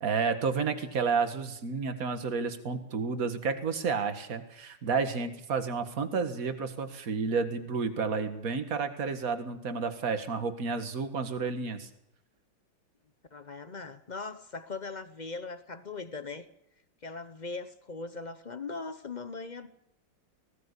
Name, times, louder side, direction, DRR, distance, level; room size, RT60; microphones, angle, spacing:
voice 1, 0.0-11.9, right 5 dB, 45° right, 8 dB, 2.0 m, -31 dB
voice 2, 13.3-16.5 17.0-19.7, left 4 dB, 55° left, 11 dB, 0.5 m, -40 dB
20.0 x 16.5 x 8.3 m, 0.78 s
omnidirectional pair, 2.3 m